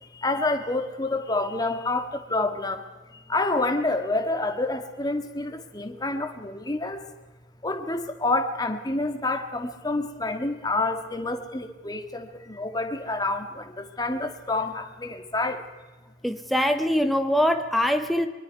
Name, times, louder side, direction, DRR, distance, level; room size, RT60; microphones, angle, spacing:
voice 1, 0.0-2.8 3.1-7.1 7.6-15.6, left 2 dB, 20° left, 5 dB, 1.8 m, -28 dB
voice 2, 16.2-18.3, equal, ahead, 7 dB, 0.8 m, -23 dB
24.0 x 23.0 x 4.7 m, 1.3 s
head